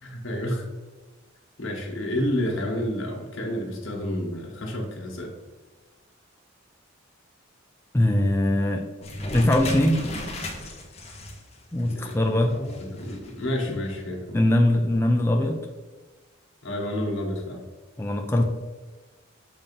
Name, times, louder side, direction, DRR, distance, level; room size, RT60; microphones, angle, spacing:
voice 1, 0.0-0.7 1.6-5.3 11.9-14.4 16.6-17.6, left 1 dB, 75° left, 0 dB, 1.4 m, -30 dB
voice 2, 7.9-8.9 9.3-10.0 11.7-12.6 13.7-13.8 14.3-15.6 18.0-18.4, left 1 dB, 10° left, 2 dB, 0.4 m, -21 dB
sound 1, 9.0-14.0, left 1 dB, 30° left, 1.0 m, -36 dB
7.2 x 2.8 x 5.3 m, 1.3 s
head